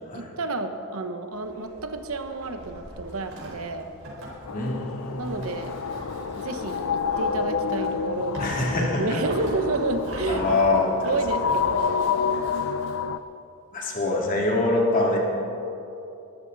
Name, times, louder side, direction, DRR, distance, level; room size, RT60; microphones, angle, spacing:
voice 1, 0.1-3.9 5.2-5.7 6.3-8.5 8.8-10.5 11.0-12.2, right 2 dB, 85° right, 7 dB, 1.1 m, -30 dB
Livestock farm animals working animals, 1.3-13.0, right 1 dB, 65° right, 4.7 m, -41 dB
sound 1, 4.5-13.2, left 6 dB, 80° left, 0.5 m, -29 dB
voice 2, 4.5-5.4 8.4-9.0 10.3-10.9 13.7-15.2, left 2 dB, 40° left, -2 dB, 2.8 m, -24 dB
22.0 x 14.0 x 4.1 m, 2.9 s
head